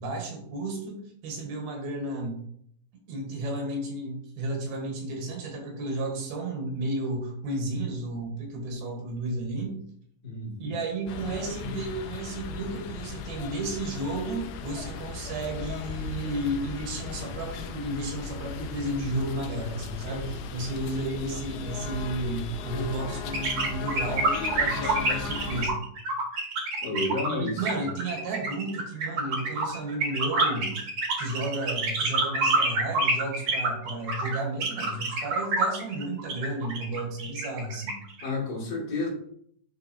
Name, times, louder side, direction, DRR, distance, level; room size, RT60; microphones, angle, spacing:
voice 1, 0.0-2.4 3.1-9.8 10.6-24.3 24.6-25.8 27.3-30.7 31.2-38.0, right 2 dB, 80° right, 1 dB, 3.3 m, -33 dB
voice 2, 10.2-10.8 26.8-27.8 38.2-39.1, left 2 dB, 45° left, -5 dB, 3.3 m, -31 dB
sound 1, 11.1-25.7, left 6 dB, 90° left, 1.8 m, -37 dB
sound 2, 23.3-38.3, right 3 dB, 50° right, 1.8 m, -27 dB
11.5 x 3.9 x 2.8 m, 0.65 s
omnidirectional pair, 4.4 m